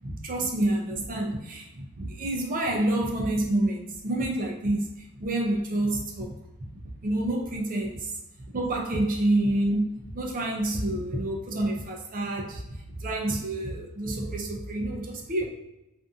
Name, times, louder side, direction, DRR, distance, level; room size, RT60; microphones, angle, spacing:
voice 1, 0.0-6.4 7.0-8.1 8.5-15.4, right 1 dB, 40° right, 0 dB, 0.5 m, -28 dB
2.6 x 2.5 x 2.4 m, 0.95 s
head